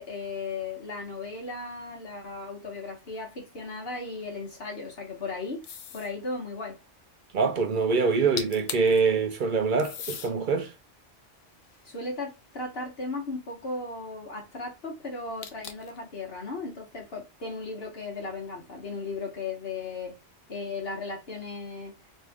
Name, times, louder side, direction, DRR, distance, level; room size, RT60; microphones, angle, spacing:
voice 1, 0.0-5.7 5.9-6.8 11.8-20.2 20.5-22.0, left 3 dB, 55° left, 1.2 m, -36 dB
sound 1, 5.6-6.2 8.1-8.2 8.4-9.0 9.8-10.3 11.0-12.5 15.4-16.0, left 7 dB, 90° left, 1.0 m, -39 dB
voice 2, 7.3-10.7, right 4 dB, 60° right, 0.5 m, -24 dB
3.0 x 2.7 x 3.4 m
omnidirectional pair, 1.2 m